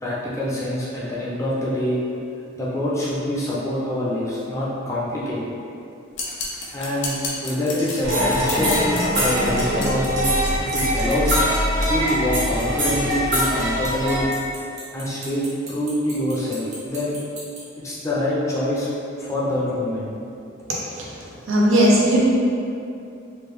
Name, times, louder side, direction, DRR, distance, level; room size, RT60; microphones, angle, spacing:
voice 1, 0.0-2.0 2.6-5.4 6.7-8.8 9.1-10.3 10.6-11.4 11.9-14.3 14.9-17.2 17.8-18.9 19.2-20.1, left 1 dB, 15° left, -7 dB, 0.5 m, -25 dB
sound 1, 6.1-11.2, left 3 dB, 65° left, 0.6 m, -32 dB
Clock, 7.8-7.9 8.1-8.4 8.7-9.3 9.6-9.9 10.2-11.0 11.3-17.6, right 4 dB, 35° right, 0.8 m, -37 dB
sound 2, 8.0-14.2, equal, 60° right, 1.3 m, -22 dB
voice 2, 21.5-22.2, equal, 85° right, -5 dB, 0.7 m, -16 dB
3.1 x 2.3 x 3.5 m, 2.6 s
head